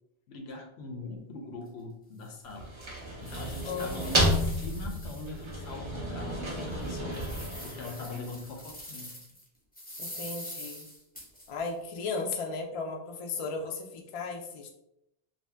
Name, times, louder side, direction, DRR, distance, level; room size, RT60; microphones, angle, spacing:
voice 1, 0.3-2.7 3.2-7.3 7.6-9.2, left 2 dB, 85° left, 3 dB, 0.9 m, -42 dB
sound 1, 1.6-1.7 2.2-2.3 2.9-5.7 6.1-6.2 6.7-9.4 9.8-11.7, left 1 dB, 10° left, 0.6 m, -45 dB
sound 2, 2.5-8.5, equal, 35° right, 0.6 m, -32 dB
voice 2, 3.6-4.2 10.0-10.9 11.5-14.7, left 4 dB, 55° left, 2 dB, 0.3 m, -35 dB
2.6 x 2.1 x 3.3 m, 0.82 s
omnidirectional pair, 1.1 m